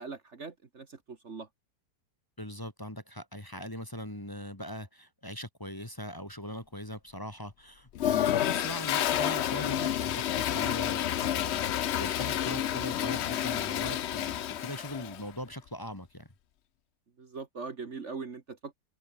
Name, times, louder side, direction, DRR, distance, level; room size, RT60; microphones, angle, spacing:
voice 1, 0.0-1.5 17.2-18.7, right 4 dB, 45° right, 1.8 m, -41 dB
voice 2, 2.4-16.3, equal, 15° left, 2.3 m, -41 dB
Toilet flush, 8.0-15.2, left 11 dB, 60° left, 0.7 m, -30 dB
open air
omnidirectional pair, 1.7 m